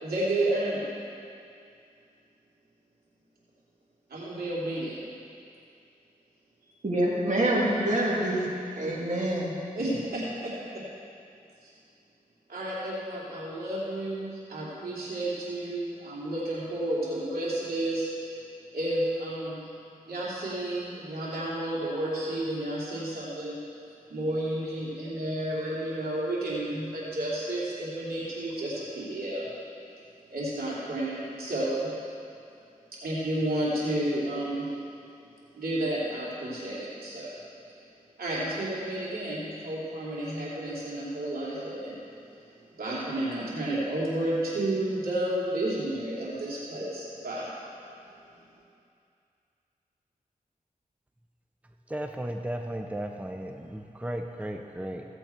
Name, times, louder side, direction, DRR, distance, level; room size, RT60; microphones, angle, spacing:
voice 1, 0.0-0.8 4.1-5.0 9.7-10.8 11.6-11.7 12.5-18.1 18.7-19.6 20.1-23.6 24.1-29.5 30.3-31.9 33.0-34.7 35.5-37.4 38.2-42.0 42.8-47.5, right 1 dB, 90° right, -7 dB, 3.0 m, -31 dB
voice 2, 6.8-8.5 8.8-9.5, right 1 dB, 55° right, -5 dB, 3.0 m, -26 dB
voice 3, 51.9-55.0, right 1 dB, 10° right, 4 dB, 0.7 m, -35 dB
16.5 x 7.9 x 4.5 m, 2.5 s
cardioid pair, 50°, 15 cm